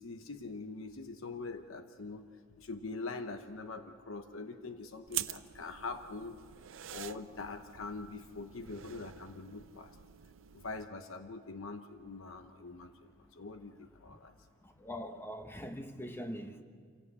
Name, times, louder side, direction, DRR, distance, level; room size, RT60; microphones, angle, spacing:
voice 1, 0.0-2.3 2.6-6.4 6.9-9.9 10.5-14.3, left 3 dB, 80° left, 0.9 m, -43 dB
sound 1, 5.1-10.8, right 13 dB, 75° right, 0.6 m, -45 dB
voice 2, 14.6-16.6, equal, 10° left, 1.1 m, -42 dB
27.5 x 16.5 x 8.2 m
head